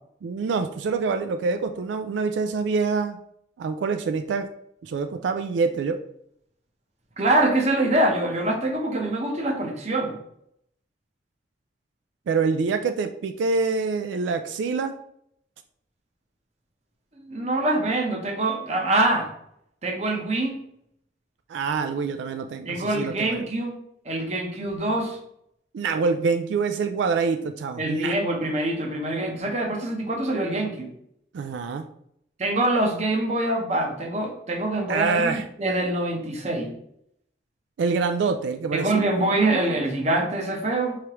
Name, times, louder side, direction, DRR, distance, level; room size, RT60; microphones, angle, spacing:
voice 1, 0.2-3.2 3.6-4.5 4.8-6.0 12.3-14.9 21.5-23.5 25.7-28.1 31.3-31.9 34.9-35.5 37.8-39.5, right 4 dB, 85° right, 7 dB, 0.3 m, -26 dB
voice 2, 7.2-10.2 17.2-19.3 19.8-20.5 22.7-23.7 24.0-25.2 27.8-30.9 32.4-36.7 38.7-41.0, right 2 dB, 35° right, 2 dB, 0.8 m, -24 dB
4.7 x 3.2 x 2.9 m, 0.73 s
head